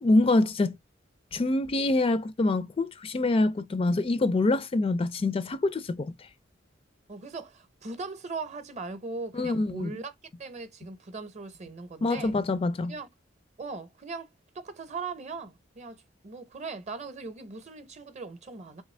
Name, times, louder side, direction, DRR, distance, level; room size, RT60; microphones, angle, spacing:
voice 1, 0.0-0.7 1.3-6.3 9.3-9.9 12.0-12.9, left 2 dB, 30° left, 0.3 m, -25 dB
voice 2, 7.1-12.3 12.9-13.1 13.6-14.3 14.5-18.8, right 3 dB, 35° right, 0.7 m, -39 dB
3.3 x 3.0 x 3.2 m
head